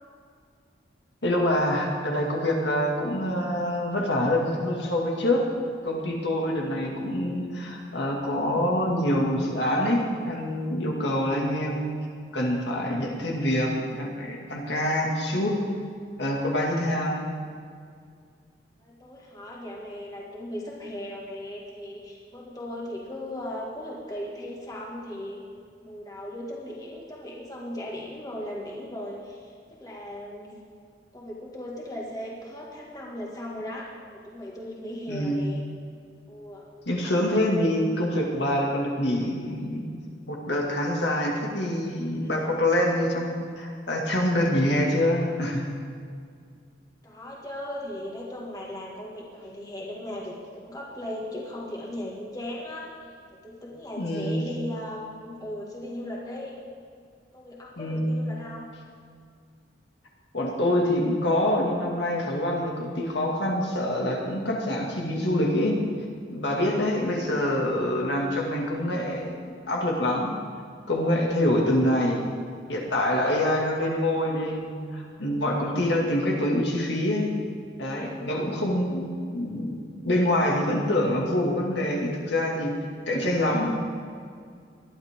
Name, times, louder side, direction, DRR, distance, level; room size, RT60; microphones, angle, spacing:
voice 1, 1.2-5.5 5.8-11.9 12.3-15.6 16.2-17.2 35.1-35.4 36.9-39.8 40.3-45.6 54.0-54.4 57.8-58.1 60.3-65.8 66.3-70.3 70.9-72.2 72.7-77.3 77.8-79.1 79.3-82.8 83.1-83.7, left 1 dB, 70° left, -1 dB, 2.2 m, -25 dB
voice 2, 18.8-25.4 25.8-30.6 31.1-35.6 36.3-36.7 42.2-42.6 47.0-56.5 57.3-58.7, left 1 dB, 20° left, -3 dB, 2.0 m, -37 dB
20.5 x 12.0 x 3.7 m, 2.2 s
head